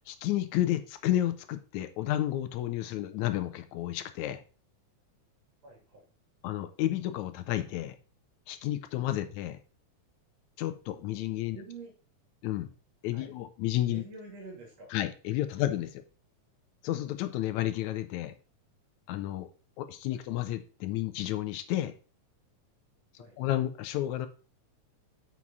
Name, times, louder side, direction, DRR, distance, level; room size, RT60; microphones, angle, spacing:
voice 1, 0.0-4.4 6.4-8.0 8.5-9.6 10.6-11.6 12.4-12.7 13.0-14.0 14.9-16.0 16.8-18.3 19.1-19.5 19.8-21.9 23.4-24.3, left 13 dB, 80° left, 9 dB, 1.9 m, -31 dB
voice 2, 5.6-6.0 11.5-11.9 13.1-13.3 13.9-14.9 20.1-20.2 23.2-23.4, right 3 dB, 60° right, 1 dB, 3.4 m, -47 dB
7.3 x 6.1 x 4.0 m, 0.36 s
omnidirectional pair, 3.5 m